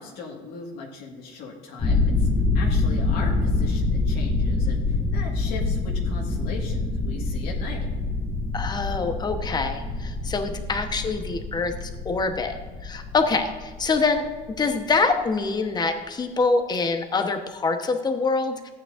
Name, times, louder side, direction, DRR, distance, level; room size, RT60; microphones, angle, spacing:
voice 1, 0.0-2.3 2.5-7.9, left 4 dB, 85° left, -2 dB, 1.8 m, -38 dB
sound 1, 1.8-14.9, left 3 dB, 55° left, 2.4 m, -26 dB
voice 2, 8.5-12.6 12.8-14.2 14.6-18.7, left 4 dB, 25° left, 6 dB, 1.0 m, -25 dB
14.0 x 9.0 x 2.5 m, 1.4 s
cardioid pair, 140°, 16 cm